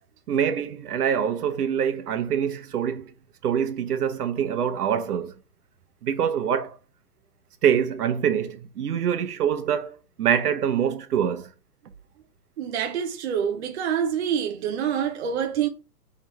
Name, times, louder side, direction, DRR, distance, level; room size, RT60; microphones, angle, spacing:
voice 1, 0.3-3.1 3.4-5.3 6.0-6.8 7.6-11.5, right 8 dB, 70° right, 1.0 m, -25 dB
voice 2, 12.6-15.7, right 8 dB, 45° right, 0.6 m, -26 dB
3.6 x 3.0 x 4.5 m
hypercardioid pair, 145°, 48 cm